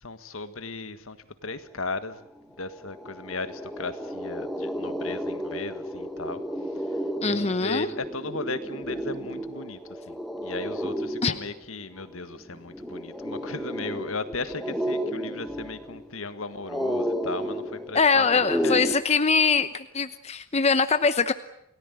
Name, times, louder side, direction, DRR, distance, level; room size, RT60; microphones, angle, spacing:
voice 1, 0.0-1.2 1.4-2.3 2.6-6.4 6.7-18.8, left 3 dB, 70° left, 11 dB, 1.7 m, -36 dB
sound 1, 2.4-2.5 2.7-18.9, equal, ahead, 1.9 m, -32 dB
voice 2, 7.2-7.9 11.2-11.3 17.9-21.3, left 4 dB, 30° left, 11 dB, 0.9 m, -22 dB
29.0 x 18.0 x 9.3 m, 0.78 s
head